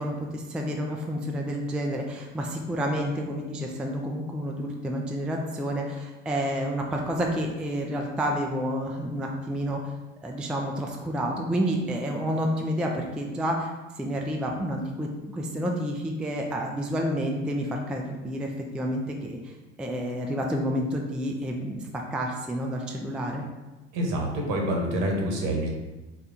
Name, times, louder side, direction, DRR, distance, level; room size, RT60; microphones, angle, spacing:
voice 1, 0.0-9.9 10.2-23.5, equal, 5° right, 1 dB, 0.3 m, -29 dB
voice 2, 23.9-25.7, right 1 dB, 60° right, 0 dB, 1.2 m, -27 dB
4.4 x 2.2 x 3.8 m, 1.1 s
hypercardioid pair, 80°, 36 cm